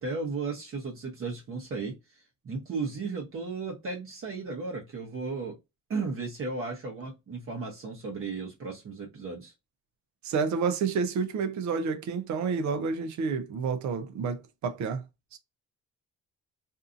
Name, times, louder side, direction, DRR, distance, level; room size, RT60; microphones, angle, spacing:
voice 1, 0.0-5.6 5.9-9.5, right 4 dB, 45° right, 1.0 m, -35 dB
voice 2, 10.2-15.0 15.3-15.4, right 5 dB, 65° right, 0.7 m, -29 dB
2.7 x 2.4 x 2.5 m
cardioid pair, 90°, 30 cm